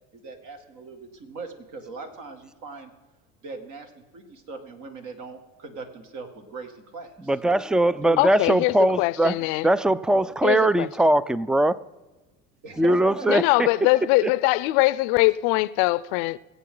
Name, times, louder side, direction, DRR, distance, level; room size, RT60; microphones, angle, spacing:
voice 1, 0.1-2.9 3.4-7.3 8.0-8.6 9.4-9.5 12.6-14.7, right 4 dB, 65° right, 2.3 m, -40 dB
voice 2, 7.3-9.3 9.6-11.8 12.8-13.7 14.2-14.3, right 1 dB, ahead, 0.3 m, -21 dB
voice 3, 8.2-9.6 10.4-10.9 13.3-16.4, left 20 dB, 80° left, 0.6 m, -22 dB
21.5 x 8.3 x 3.9 m
supercardioid pair, 90°, 33 cm